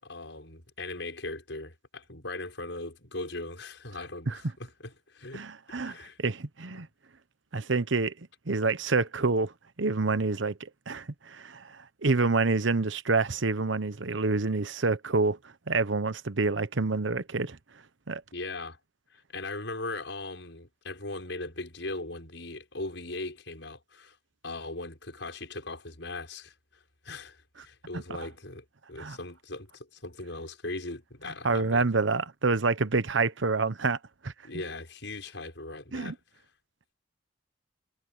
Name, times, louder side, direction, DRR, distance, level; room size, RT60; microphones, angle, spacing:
voice 1, 0.0-6.2 18.3-18.8 19.1-24.1 24.4-26.5 27.0-31.8 34.4-36.2, left 2 dB, 75° left, 6.7 m, -39 dB
voice 2, 5.3-6.9 7.5-8.1 8.5-9.5 9.8-17.6 18.1-18.2 27.9-28.3 29.0-29.2 31.4-34.0 34.2-34.3 35.9-36.1, right 3 dB, 80° right, 1.0 m, -27 dB
head